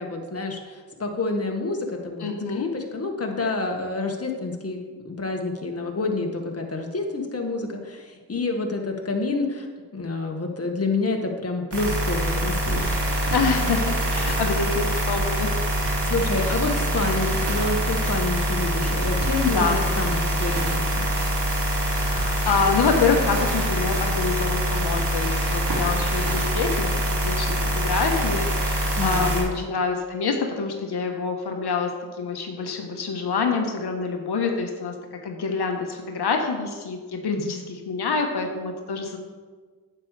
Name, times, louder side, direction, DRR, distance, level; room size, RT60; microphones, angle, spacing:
voice 1, 0.0-9.7 9.9-12.9 15.8-21.1 29.0-29.7 37.3-37.6, left 3 dB, 35° left, 2 dB, 1.8 m, -28 dB
voice 2, 2.2-2.7 13.3-15.5 19.5-19.8 21.9-26.9 27.2-34.9 35.2-39.2, left 5 dB, 60° left, 3 dB, 1.3 m, -26 dB
sound 1, 11.7-29.4, right 1 dB, 65° right, 2.8 m, -24 dB
9.4 x 8.1 x 3.3 m, 1.4 s
supercardioid pair, 40°, 44 cm